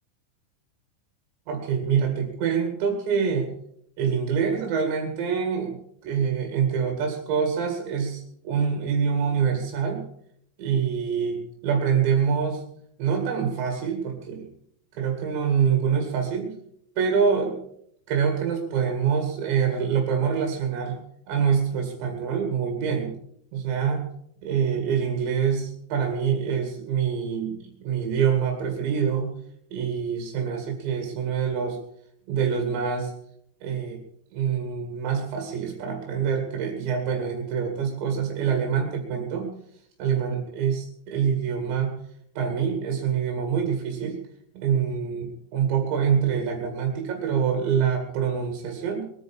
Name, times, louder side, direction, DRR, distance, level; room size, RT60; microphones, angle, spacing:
voice 1, 1.5-3.5 4.0-5.8 6.0-10.0 10.6-12.6 13.0-14.5 15.0-16.5 17.0-17.6 18.1-21.0 21.3-23.1 23.5-24.1 24.4-29.3 29.7-31.8 32.3-33.1 33.6-34.0 34.3-39.5 40.0-42.0 42.4-44.2 44.5-49.0, right 7 dB, 70° right, 2 dB, 4.3 m, -25 dB
22.5 x 9.4 x 5.4 m, 0.69 s
omnidirectional pair, 5.5 m